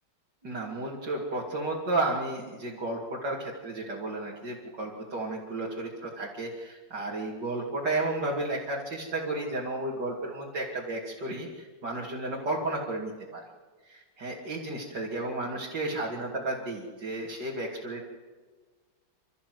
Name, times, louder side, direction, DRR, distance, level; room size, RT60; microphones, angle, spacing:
voice 1, 0.4-13.4 13.8-18.0, right 2 dB, 70° right, -4 dB, 3.2 m, -33 dB
28.5 x 13.5 x 7.8 m, 1.4 s
omnidirectional pair, 1.9 m